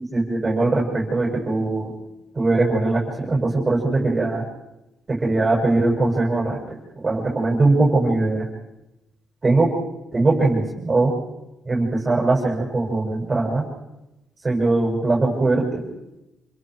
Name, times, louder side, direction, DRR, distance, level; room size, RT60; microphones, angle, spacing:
voice 1, 0.0-1.9 2.3-4.4 5.1-8.5 9.4-9.7 10.1-11.2 11.7-13.7 14.4-15.9, right 2 dB, 25° right, -2 dB, 7.5 m, -21 dB
28.0 x 25.5 x 4.9 m, 0.96 s
cardioid pair, 90°, 0 cm